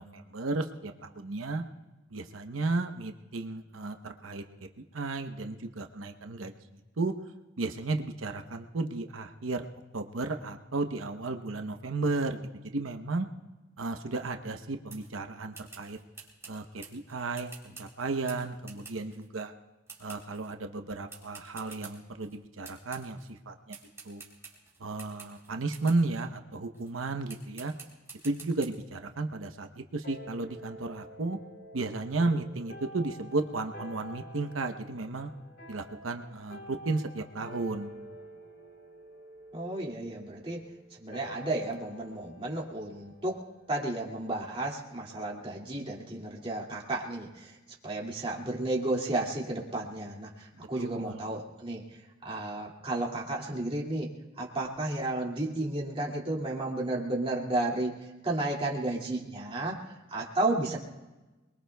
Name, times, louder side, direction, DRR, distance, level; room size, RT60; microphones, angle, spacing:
voice 1, 0.0-1.6 2.1-4.7 4.9-6.5 7.0-7.1 7.6-9.7 9.9-13.3 13.8-16.0 16.5-19.5 20.0-23.8 24.0-24.2 24.8-27.7 28.2-31.4 31.7-35.3 35.7-37.9 50.5-51.3, right 3 dB, 85° right, 6 dB, 0.9 m, -34 dB
sound 1, 14.9-15.1 15.5-19.3 19.9-20.5 21.1-22.4 22.6-23.3 23.7-26.1 26.7-26.9 27.3-28.7, right 4 dB, 15° right, 3.3 m, -49 dB
sound 2, 30.0-44.8, equal, 60° left, 3.6 m, -49 dB
voice 2, 39.5-40.6 40.9-47.6 47.8-51.8 52.2-58.0 58.2-60.8, right 2 dB, 30° right, -3 dB, 2.3 m, -33 dB
27.5 x 22.0 x 2.3 m, 1.1 s
head